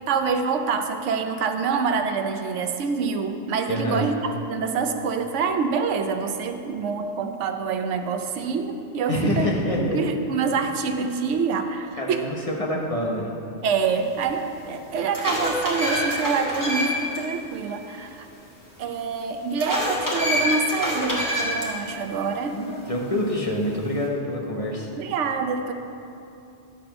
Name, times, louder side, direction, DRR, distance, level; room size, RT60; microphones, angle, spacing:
voice 1, 0.1-4.1 4.5-9.5 9.8-12.2 13.6-18.3 18.8-22.6 24.9-25.7, right 5 dB, 90° right, 7 dB, 1.0 m, -26 dB
voice 2, 3.7-4.1 9.1-10.0 12.0-13.3 22.5-24.9, left 1 dB, 30° left, -2 dB, 1.0 m, -26 dB
sound 1, 14.2-14.3 14.8-17.2 17.5-17.6 19.6-21.7, left 1 dB, 15° left, 1.6 m, -26 dB
11.0 x 4.2 x 6.7 m, 2.7 s
omnidirectional pair, 1.2 m